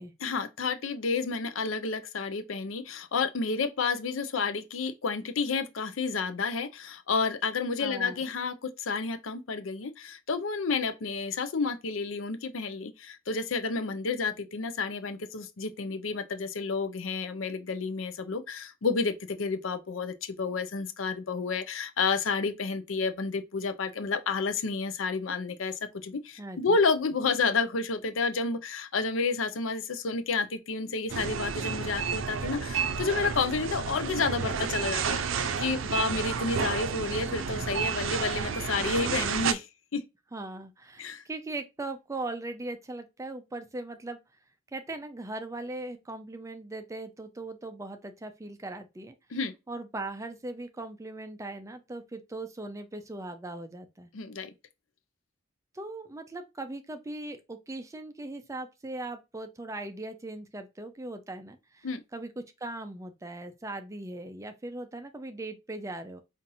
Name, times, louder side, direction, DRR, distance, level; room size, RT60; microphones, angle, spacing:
voice 1, 0.2-39.7 39.9-40.0 41.0-41.2 49.3-49.5 54.1-54.5 61.8-62.0, left 4 dB, 75° left, 0.6 m, -30 dB
voice 2, 7.8-8.2 26.4-26.8 40.3-44.2 44.7-49.1 49.7-54.1 55.7-62.3 62.6-66.2, right 2 dB, 15° right, 0.4 m, -39 dB
sound 1, 31.1-39.5, right 6 dB, 75° right, 0.5 m, -31 dB
5.4 x 2.5 x 2.6 m
head